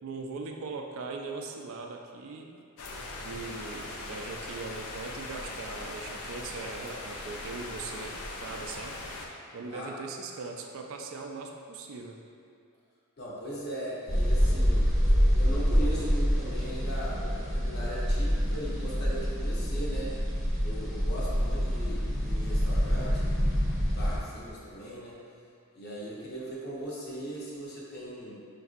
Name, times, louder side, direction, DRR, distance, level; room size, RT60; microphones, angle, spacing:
voice 1, 0.0-2.6 3.2-9.0 9.5-12.2, right 4 dB, 65° right, 3 dB, 0.3 m, -40 dB
sound 1, 2.8-9.3, left 2 dB, 85° left, 0.5 m, -40 dB
voice 2, 13.2-14.9 15.4-20.1 20.6-25.2 25.7-28.3, equal, 45° left, -6 dB, 0.8 m, -39 dB
sound 2, 14.1-24.2, equal, 5° left, 0.7 m, -26 dB
5.4 x 2.6 x 2.4 m, 2.4 s
head